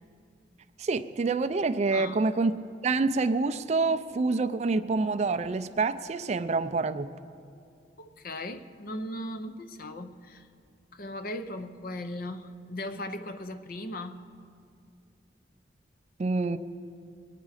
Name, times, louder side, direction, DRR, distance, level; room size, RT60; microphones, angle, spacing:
voice 1, 0.8-2.5 2.8-7.2 16.2-16.6, right 3 dB, 35° right, 0.4 m, -27 dB
voice 2, 1.9-2.2 8.0-10.5 10.9-14.2, left 1 dB, 50° left, 0.6 m, -38 dB
22.0 x 9.2 x 4.9 m
head